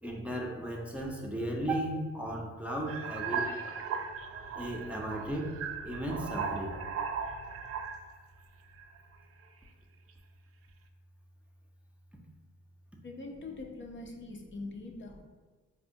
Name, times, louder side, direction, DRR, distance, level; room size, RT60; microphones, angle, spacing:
voice 1, 0.0-3.6 4.5-6.8, right 1 dB, 5° right, -1 dB, 0.6 m, -35 dB
sound 1, 2.9-8.1 8.7-9.2, right 5 dB, 50° right, 0.4 m, -37 dB
voice 2, 13.0-15.2, left 3 dB, 40° left, 2 dB, 0.5 m, -43 dB
4.2 x 2.1 x 2.6 m, 1.4 s
supercardioid pair, 55°, 30 cm